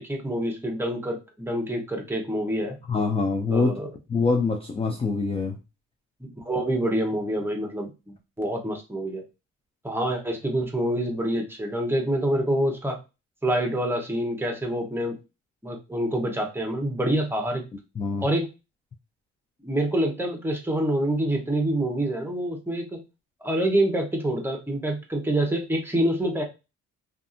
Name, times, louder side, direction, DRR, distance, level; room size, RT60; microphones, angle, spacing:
voice 1, 0.0-2.8 3.5-3.9 6.2-9.2 9.8-13.0 13.4-15.2 15.6-17.6 18.2-18.5 19.6-23.0 23.4-26.4, right 1 dB, 5° right, 0.8 m, -26 dB
voice 2, 2.9-3.8 4.1-5.6 18.0-18.3, left 4 dB, 20° left, 0.4 m, -24 dB
2.6 x 2.4 x 2.5 m
cardioid pair, 90°, 30 cm